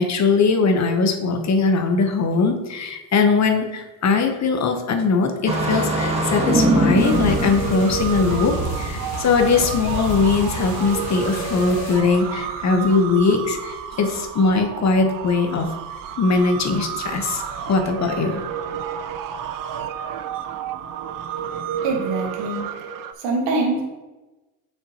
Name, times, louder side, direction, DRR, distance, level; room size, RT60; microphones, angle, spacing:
voice 1, 0.0-15.7 16.2-18.4, left 4 dB, 35° left, 5 dB, 1.0 m, -20 dB
Engine starting, 5.5-8.5, right 1 dB, 15° right, 1.5 m, -21 dB
sound 1, 6.6-23.1, right 8 dB, 45° right, 0.6 m, -31 dB
sound 2, 7.0-12.0, left 1 dB, 85° left, 1.7 m, -30 dB
voice 2, 21.8-22.6 23.2-23.8, right 3 dB, 65° right, 0 dB, 1.8 m, -23 dB
7.1 x 5.6 x 2.9 m, 1.1 s
hypercardioid pair, 80°, 45 cm